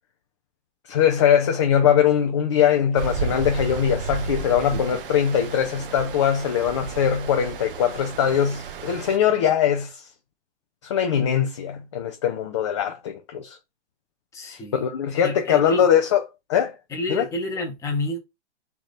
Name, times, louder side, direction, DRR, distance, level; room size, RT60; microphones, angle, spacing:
voice 1, 0.9-10.1 10.8-13.6 14.5-16.2 16.5-16.8 17.1-17.3, left 9 dB, 25° left, 0.4 m, -21 dB
Stream, 3.0-9.2, right 6 dB, 50° right, 0.7 m, -33 dB
voice 2, 14.3-14.8 15.2-15.8 16.9-18.2, left 1 dB, 10° left, 0.8 m, -29 dB
3.3 x 2.9 x 4.0 m
hypercardioid pair, 140°, 35 cm